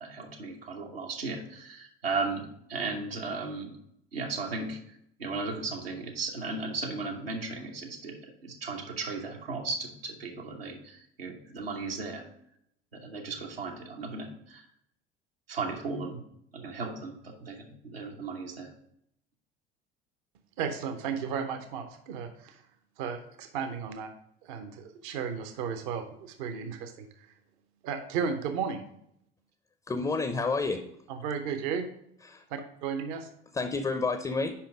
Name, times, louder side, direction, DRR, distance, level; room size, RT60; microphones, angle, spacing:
voice 1, 0.0-3.7 4.1-4.8 5.2-12.3 12.9-14.7 15.5-16.2 16.5-18.7, right 3 dB, 80° right, 0 dB, 1.0 m, -36 dB
voice 2, 20.6-22.6 23.0-24.1 24.4-27.3 27.8-28.8 31.1-31.9 32.5-33.3, right 6 dB, 60° right, 8 dB, 0.8 m, -34 dB
voice 3, 29.9-30.8 32.2-32.4 33.5-34.5, left 3 dB, 15° left, 8 dB, 0.5 m, -29 dB
5.7 x 5.1 x 4.9 m, 0.74 s
figure-of-eight pair, 65°, 29 cm